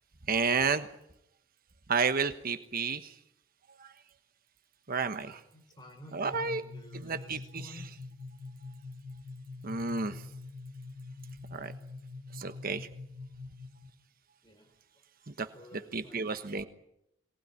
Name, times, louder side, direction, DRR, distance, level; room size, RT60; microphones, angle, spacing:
voice 1, 0.3-0.9 1.9-3.1 4.9-5.4 6.1-6.6 6.9-7.8 9.6-10.2 11.5-11.7 12.3-12.9 15.3-15.5 15.7-16.7, right 5 dB, 45° right, 10 dB, 1.1 m, -31 dB
voice 2, 5.5-7.9 14.4-14.7 15.5-16.3, equal, 20° left, 5 dB, 4.6 m, -51 dB
sound 1, 6.3-13.9, left 3 dB, 85° right, 3.1 m, -45 dB
23.0 x 19.0 x 9.6 m, 0.82 s
head